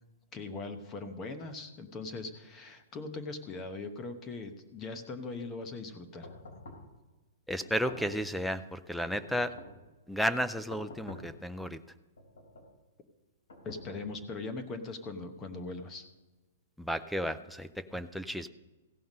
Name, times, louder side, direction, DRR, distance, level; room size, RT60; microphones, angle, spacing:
voice 1, 0.3-6.3 13.6-16.1, left 3 dB, 20° left, 7 dB, 0.9 m, -40 dB
sound 1, 6.2-6.9 7.6-8.4 9.1-9.9 10.7-11.4 12.2-12.8 13.5-14.4, left 1 dB, 85° left, 3.5 m, -48 dB
voice 2, 7.5-9.5 10.1-11.8 16.8-18.5, equal, ahead, 12 dB, 0.4 m, -33 dB
16.0 x 5.7 x 5.3 m, 1.2 s
hypercardioid pair, 165°, 0 cm